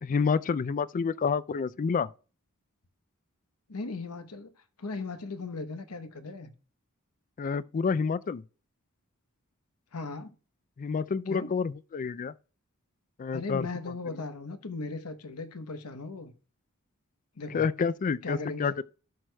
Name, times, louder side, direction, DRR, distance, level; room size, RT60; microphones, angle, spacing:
voice 1, 0.0-2.1 7.4-8.4 10.8-12.3 13.2-13.7 14.1-14.2 17.5-18.8, left 5 dB, 40° left, 0.3 m, -28 dB
voice 2, 3.7-4.5 4.8-6.5 9.9-10.3 11.3-11.6 13.3-16.3 17.4-17.6 18.2-18.7, left 3 dB, 90° left, 1.0 m, -37 dB
17.0 x 6.2 x 2.2 m
head